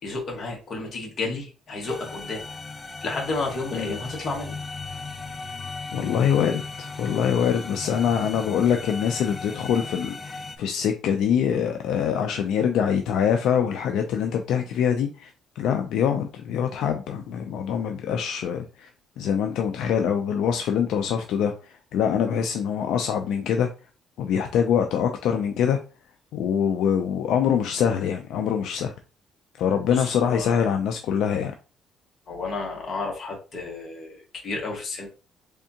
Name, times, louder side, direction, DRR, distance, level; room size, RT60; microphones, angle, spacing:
voice 1, 0.0-2.4 3.0-4.6 29.9-30.5 32.3-35.1, left 3 dB, 45° left, 0 dB, 1.5 m, -31 dB
sound 1, 1.8-10.6, left 4 dB, 25° left, 0.5 m, -37 dB
voice 2, 5.9-15.3 15.6-18.9 19.2-23.7 24.2-25.8 26.3-28.9 29.6-31.5, left 8 dB, 80° left, 5 dB, 0.4 m, -24 dB
3.6 x 3.4 x 2.8 m, 0.34 s
cardioid pair, 120°, 0 cm